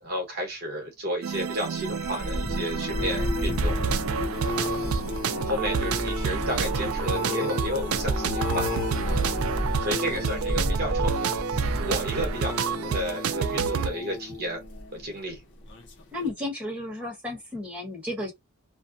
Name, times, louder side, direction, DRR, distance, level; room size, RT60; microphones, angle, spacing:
voice 1, 0.0-4.1 4.3-4.8 5.4-8.7 9.0-9.5 9.8-14.6 14.9-15.4, equal, 50° right, 1.1 m, -33 dB
sound 1, 1.2-13.9, right 6 dB, 80° right, 0.3 m, -29 dB
sound 2, 1.8-15.2 15.7-16.0 16.3-16.4, left 1 dB, 55° left, 0.7 m, -31 dB
voice 2, 16.1-18.3, left 2 dB, 5° right, 1.1 m, -33 dB
2.5 x 2.2 x 2.5 m
head